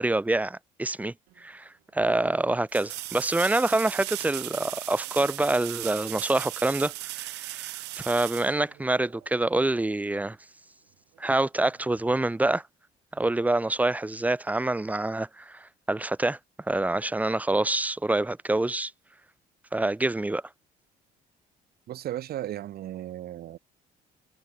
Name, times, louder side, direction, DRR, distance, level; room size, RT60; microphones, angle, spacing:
voice 1, 0.0-10.4 11.2-12.6 13.1-16.4 16.7-18.9 19.7-20.4, right 2 dB, 10° right, 1.3 m, -26 dB
sound 1, 1.3-1.4 2.7-9.3 12.2-12.3, right 20 dB, 85° right, 1.8 m, -37 dB
voice 2, 21.9-23.6, right 13 dB, 65° right, 4.3 m, -35 dB
cardioid pair, 110°, 17 cm